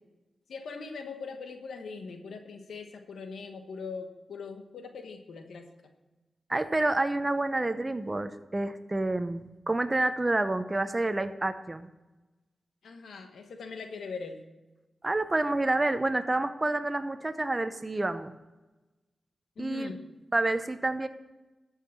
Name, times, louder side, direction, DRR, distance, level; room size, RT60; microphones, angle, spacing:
voice 1, 0.5-5.7 12.8-14.4 19.6-20.1, left 4 dB, 90° left, 5 dB, 1.2 m, -41 dB
voice 2, 6.5-11.9 15.0-18.3 19.6-19.9 20.3-21.1, right 2 dB, 30° right, 10 dB, 0.7 m, -28 dB
13.0 x 5.6 x 7.4 m, 1.1 s
cardioid pair, 50°, 0 cm